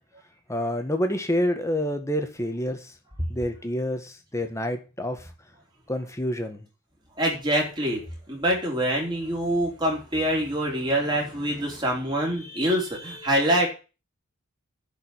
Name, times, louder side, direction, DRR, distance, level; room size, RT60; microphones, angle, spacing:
voice 1, 0.5-2.8 3.3-5.2 5.9-6.6, left 1 dB, 15° left, 1.6 m, -27 dB
voice 2, 7.2-13.7, right 1 dB, 20° right, 4.2 m, -25 dB
11.0 x 5.4 x 8.2 m
head